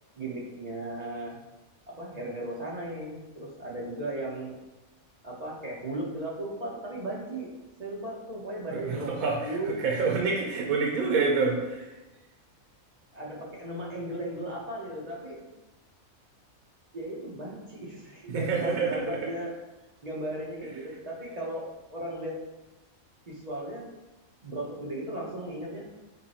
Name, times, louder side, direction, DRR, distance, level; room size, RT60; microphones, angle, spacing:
voice 1, 0.2-1.4 1.9-4.6 5.2-7.5 7.8-9.8 13.1-15.5 16.9-19.5 20.0-22.3 23.3-23.9 24.4-25.8, right 1 dB, 35° right, -3 dB, 0.8 m, -36 dB
voice 2, 8.8-11.9 18.3-19.3, right 4 dB, 85° right, 0 dB, 1.1 m, -27 dB
5.5 x 2.2 x 4.1 m, 1.1 s
omnidirectional pair, 1.5 m